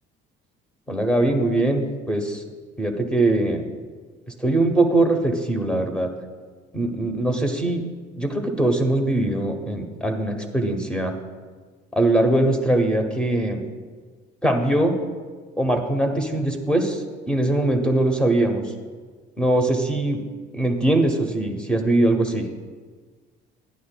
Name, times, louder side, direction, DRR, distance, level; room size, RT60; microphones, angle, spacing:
voice 1, 0.9-2.4 2.8-3.7 4.4-6.1 6.7-7.8 8.2-11.1 11.9-13.6 14.4-15.0 15.6-18.7 19.4-20.2 20.5-22.5, right 1 dB, 5° left, 4 dB, 0.8 m, -21 dB
12.0 x 10.0 x 2.2 m, 1.5 s
cardioid pair, 160°, 21 cm